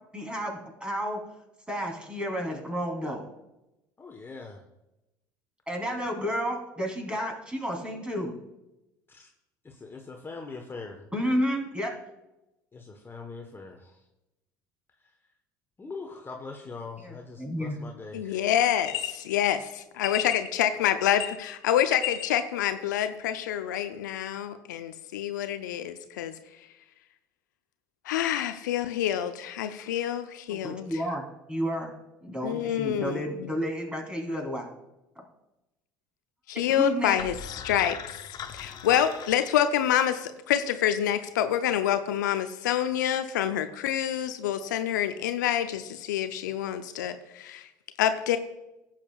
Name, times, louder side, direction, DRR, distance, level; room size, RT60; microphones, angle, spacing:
voice 1, 0.1-1.2 1.7-3.2 5.7-8.3 11.1-11.9 17.0-17.8 30.5-31.9 32.2-34.7 36.7-37.2, equal, 10° right, 3.3 m, -31 dB
voice 2, 4.0-4.6 9.1-9.3 9.6-11.1 12.7-14.0 15.0-15.1 15.8-18.4, left 4 dB, 25° left, 1.2 m, -42 dB
voice 3, 18.1-19.6 20.0-26.3 28.0-30.9 32.4-33.5 36.5-38.2 38.5-47.7 48.0-48.4, left 10 dB, 80° left, 0.5 m, -27 dB
sound 1, 18.7-19.1 20.0-20.5 21.0-21.6 21.9-22.4, left 12 dB, 60° left, 1.9 m, -33 dB
sound 2, 37.2-40.2, left 7 dB, 45° left, 0.8 m, -41 dB
16.5 x 7.5 x 2.4 m
hypercardioid pair, 65°, 10 cm